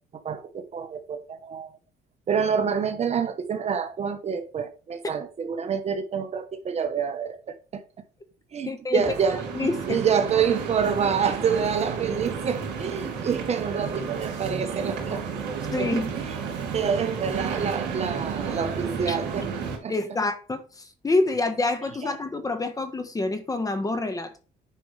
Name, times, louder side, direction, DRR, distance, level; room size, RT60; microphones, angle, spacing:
voice 1, 0.1-1.7 2.3-7.8 8.5-15.2 15.8-15.9 16.2-16.4 16.7-19.5 19.8-19.9 22.0-22.1, right 7 dB, 40° right, 1.0 m, -27 dB
voice 2, 8.6-9.0 9.5-10.0 15.7-16.1 19.1-19.2 19.9-24.5, left 2 dB, 20° left, 1.3 m, -27 dB
sound 1, 8.9-19.8, right 6 dB, 80° right, 2.9 m, -32 dB
9.7 x 5.2 x 3.3 m
cardioid pair, 110°, 17 cm